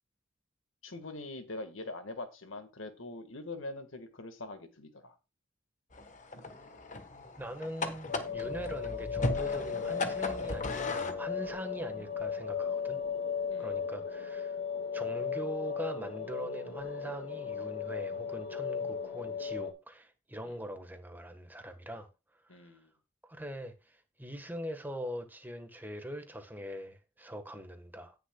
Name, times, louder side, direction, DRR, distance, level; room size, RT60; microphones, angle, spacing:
voice 1, 0.8-5.1 8.3-8.5 13.5-13.8 20.4-20.6 22.5-22.9, left 2 dB, 90° left, 1.6 m, -43 dB
sound 1, 5.9-11.2, left 2 dB, 40° left, 1.2 m, -37 dB
voice 2, 7.4-13.0 13.6-14.6 14.9-22.1 22.4-22.8 23.2-28.2, equal, 10° right, 1.3 m, -42 dB
sound 2, 8.1-19.7, left 6 dB, 70° left, 1.9 m, -36 dB
18.0 x 6.7 x 2.3 m
head